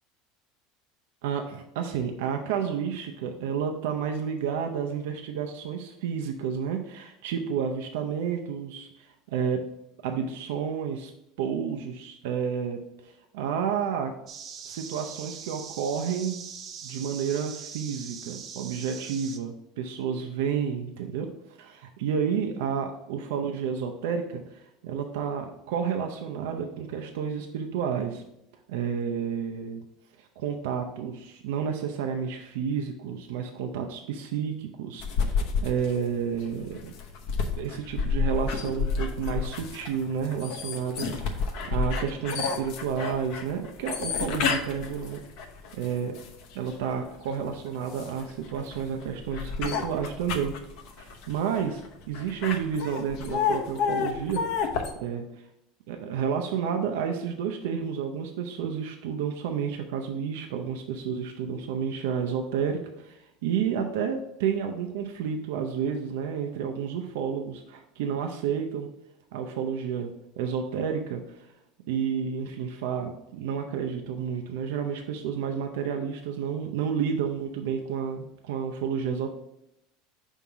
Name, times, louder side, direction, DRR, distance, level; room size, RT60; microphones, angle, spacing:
voice 1, 1.2-9.6 10.0-11.1 11.4-14.1 14.7-16.4 16.8-21.3 21.6-28.2 28.7-29.8 30.2-36.9 37.6-45.2 45.7-46.2 46.5-50.5 51.0-51.8 52.1-54.7 55.0-55.2 55.9-68.9 69.3-70.1 70.4-71.5 71.9-79.3, right 7 dB, 80° right, 4 dB, 0.6 m, -30 dB
sound 1, 14.3-19.4, right 7 dB, 35° right, 0.6 m, -42 dB
sound 2, 35.0-46.7 47.3-54.9, left 5 dB, 60° left, 0.9 m, -30 dB
5.5 x 3.6 x 5.7 m, 0.85 s
cardioid pair, 155°, 0 cm